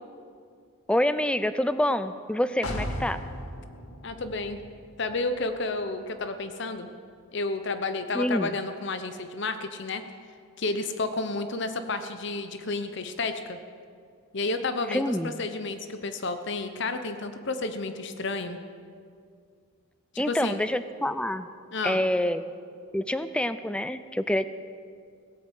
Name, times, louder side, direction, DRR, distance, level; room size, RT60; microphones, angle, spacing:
voice 1, 0.9-3.2 8.1-8.5 14.9-15.3 20.2-21.5 21.8-22.5 22.9-24.5, left 1 dB, 5° left, 12 dB, 0.4 m, -26 dB
sound 1, 2.6-6.4 6.7-6.8, left 1 dB, 85° left, 1.7 m, -38 dB
voice 2, 4.0-4.6 5.0-6.9 7.3-10.0 10.6-13.6 14.3-18.6 20.1-20.6 21.7-22.1, left 3 dB, 55° left, 9 dB, 0.8 m, -31 dB
17.5 x 8.7 x 7.9 m, 2.2 s
head